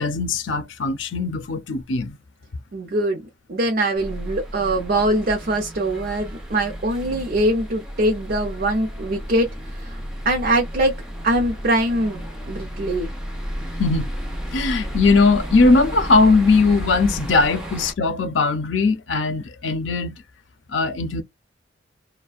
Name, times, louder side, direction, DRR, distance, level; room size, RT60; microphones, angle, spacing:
voice 1, 0.0-2.2 13.8-14.1 14.5-20.1 20.7-21.2, left 3 dB, 75° left, 0.5 m, -19 dB
voice 2, 2.7-3.2 3.5-10.0 10.2-11.0 11.2-13.1, right 1 dB, 55° right, 0.6 m, -22 dB
sound 1, 4.0-17.9, equal, 5° right, 0.6 m, -32 dB
2.5 x 2.1 x 2.3 m
head